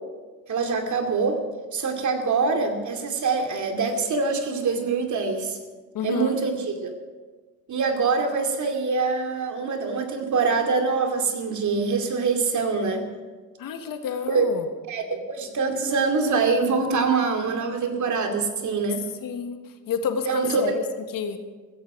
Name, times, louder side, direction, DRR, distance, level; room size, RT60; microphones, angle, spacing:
voice 1, 0.5-1.4 1.7-5.6 6.0-6.9 7.7-13.0 14.3-14.5 14.9-19.0 20.3-20.7, right 4 dB, 55° right, 5 dB, 2.6 m, -24 dB
voice 2, 5.9-6.3 13.6-14.6 19.2-19.6 19.9-20.8 21.1-21.4, left 7 dB, 70° left, 7 dB, 1.6 m, -29 dB
15.5 x 15.0 x 5.0 m, 1.4 s
cardioid pair, 90°, 35 cm